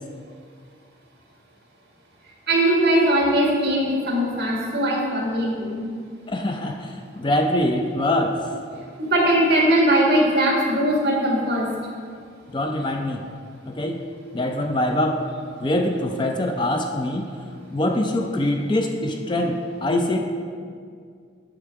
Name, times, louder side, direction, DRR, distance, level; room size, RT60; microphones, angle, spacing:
voice 1, 2.5-5.8 9.0-11.7, right 1 dB, 55° right, -2 dB, 1.7 m, -20 dB
voice 2, 6.3-8.5 12.5-13.3 13.7-14.0 14.3-15.3 15.6-17.3 17.7-20.2, left 1 dB, 25° left, 3 dB, 0.4 m, -24 dB
8.5 x 6.0 x 4.5 m, 2.2 s
head